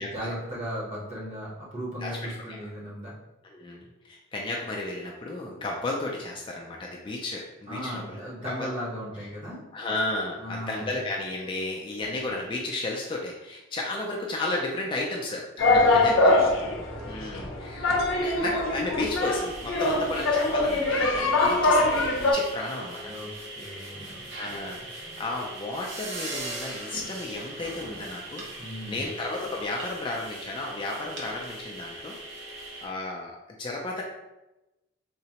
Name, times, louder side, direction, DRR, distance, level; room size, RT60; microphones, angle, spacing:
voice 1, 0.0-3.1 7.7-9.6 10.4-11.0 15.6-16.8 19.8-20.1 23.0-24.9 28.6-29.1, equal, 35° right, -6 dB, 0.9 m, -37 dB
voice 2, 3.4-8.7 9.7-16.4 17.0-22.0 22.3-23.1 24.4-32.1 32.5-34.0, left 2 dB, 25° left, -1 dB, 0.3 m, -33 dB
sound 1, 15.6-22.3, left 2 dB, 85° left, 0.6 m, -23 dB
sound 2, 19.2-32.9, right 1 dB, 70° right, 0.7 m, -40 dB
3.7 x 2.1 x 2.8 m, 0.98 s
head